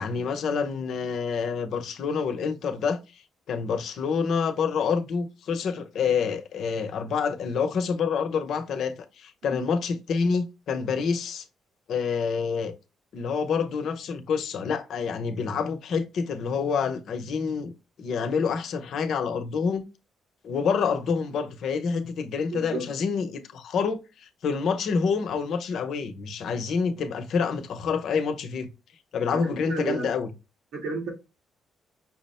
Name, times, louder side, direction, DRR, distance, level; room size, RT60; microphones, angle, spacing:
voice 1, 0.0-3.2 3.5-11.4 11.9-12.7 13.1-17.7 18.0-19.8 20.4-28.7 29.1-30.3, left 5 dB, 70° left, 0.8 m, -27 dB
voice 2, 22.5-22.9 29.3-30.1 30.7-31.1, right 3 dB, 85° right, 1.9 m, -32 dB
5.9 x 2.1 x 4.2 m
cardioid pair, 90°, 0 cm